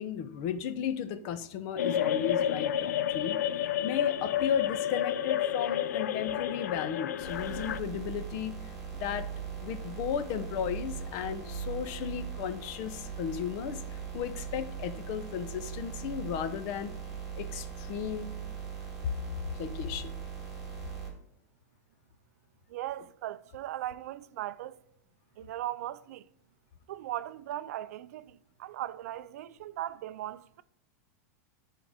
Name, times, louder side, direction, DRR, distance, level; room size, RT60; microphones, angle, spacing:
voice 1, 0.0-9.3 9.6-16.9 17.3-18.3 19.0-19.1 19.5-20.2, left 8 dB, 45° left, 0.6 m, -35 dB
sound 1, 1.8-7.8, left 10 dB, 85° left, 0.4 m, -30 dB
sound 2, 7.2-21.1, right 6 dB, 5° right, 2.5 m, -40 dB
voice 2, 22.7-24.8 25.4-26.2 26.9-30.6, right 13 dB, 70° right, 0.3 m, -38 dB
11.0 x 3.7 x 3.5 m
supercardioid pair, 150°, 9 cm